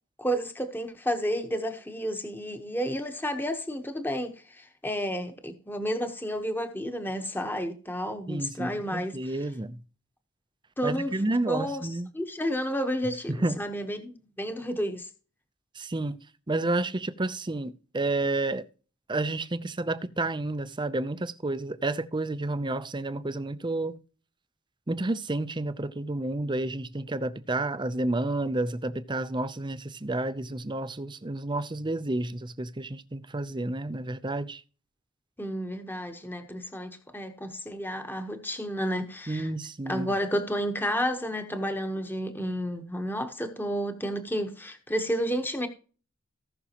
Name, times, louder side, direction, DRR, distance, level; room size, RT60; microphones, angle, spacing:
voice 1, 0.2-9.1 10.8-11.1 11.5-11.9 12.1-15.1 35.4-39.5 39.9-45.7, equal, 10° left, 1.2 m, -31 dB
voice 2, 8.3-9.8 10.8-12.1 13.3-13.6 15.7-16.2 16.5-18.7 19.1-24.0 24.9-34.6 39.3-40.1, right 2 dB, 20° right, 0.7 m, -30 dB
18.0 x 6.1 x 3.0 m
head